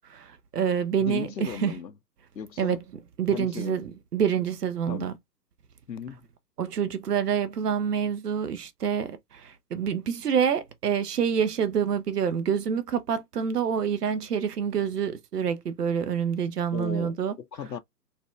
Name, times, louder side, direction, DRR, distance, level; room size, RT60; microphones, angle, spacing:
voice 1, 0.1-1.8 2.6-2.8 3.2-5.1 6.6-17.3, right 7 dB, 70° right, 0.7 m, -27 dB
voice 2, 1.0-1.9 2.3-2.8 3.3-3.8 4.9-5.1 5.9-6.2 16.7-17.8, left 7 dB, 85° left, 0.6 m, -36 dB
4.1 x 2.5 x 2.3 m
figure-of-eight pair, 125°, 50 cm